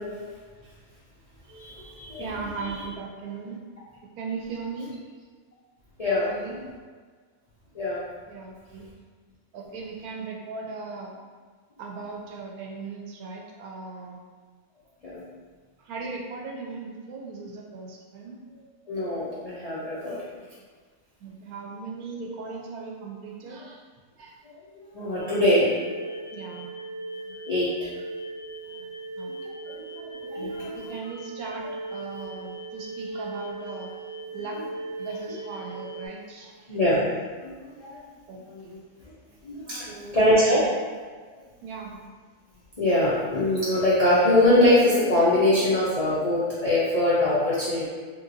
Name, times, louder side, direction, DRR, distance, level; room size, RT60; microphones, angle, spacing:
voice 1, 1.5-2.8 6.0-6.3 7.7-8.0 15.0-15.2 18.9-20.2 22.2-22.3 24.4-24.6 24.9-25.7 27.5-27.9 29.3-31.0 36.7-37.0 37.4-38.0 38.5-38.6 39.4-39.9 40.1-40.6 41.3-41.4 42.8-47.8, left 1 dB, 60° left, -10 dB, 0.4 m, -23 dB
voice 2, 2.2-3.6 4.2-4.9 6.0-6.6 8.3-8.9 9.5-11.1 11.8-14.2 15.8-18.4 21.2-23.8 24.2-24.4 26.3-26.7 29.2-29.3 29.7-29.8 30.7-33.9 34.3-34.6 35.0-36.8 38.3-38.8 39.7-40.8 41.6-41.9, right 4 dB, 85° right, -1 dB, 1.1 m, -38 dB
sound 1, 25.2-36.1, right 2 dB, 85° left, 1.2 m, -38 dB
3.1 x 2.7 x 2.5 m, 1.5 s
omnidirectional pair, 1.5 m